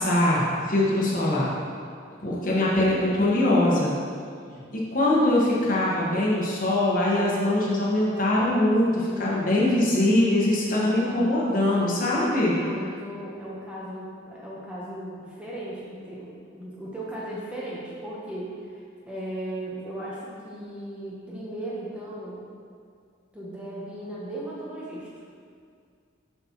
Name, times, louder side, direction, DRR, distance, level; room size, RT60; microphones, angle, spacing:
voice 1, 0.0-1.5 2.2-3.9 4.5-12.6, left 1 dB, 45° left, -5 dB, 1.2 m, -22 dB
voice 2, 9.1-10.0 10.8-12.0 12.6-22.5 23.3-25.1, right 1 dB, 5° right, -7 dB, 0.8 m, -37 dB
7.2 x 5.8 x 2.9 m, 2.2 s
head